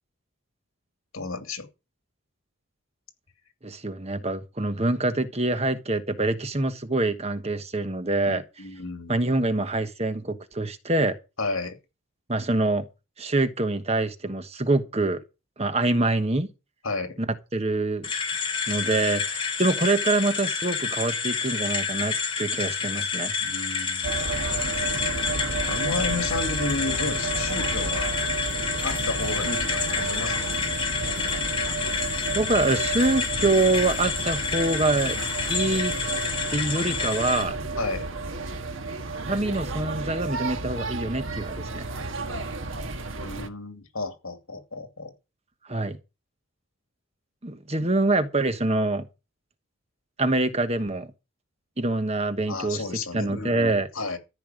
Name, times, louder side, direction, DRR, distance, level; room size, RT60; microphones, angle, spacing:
voice 1, 1.1-1.7 8.3-9.3 11.4-11.8 16.8-17.2 23.4-24.1 25.6-28.1 28.8-30.5 37.8-38.1 43.2-45.1 52.5-54.2, left 3 dB, 65° left, 2.7 m, -32 dB
voice 2, 3.6-8.4 9.1-11.1 12.3-12.9 13.2-15.2 15.6-16.5 17.2-18.1 18.7-23.3 32.3-35.2 35.5-35.9 36.5-37.6 39.3-41.9 45.7-46.0 47.4-49.0 50.2-51.1 51.8-52.8 53.1-53.9, right 2 dB, 30° right, 1.2 m, -25 dB
sound 1, 18.0-37.4, left 5 dB, 25° left, 3.0 m, -29 dB
sound 2, 24.0-43.5, right 3 dB, 60° right, 1.6 m, -32 dB
14.0 x 5.8 x 9.1 m
head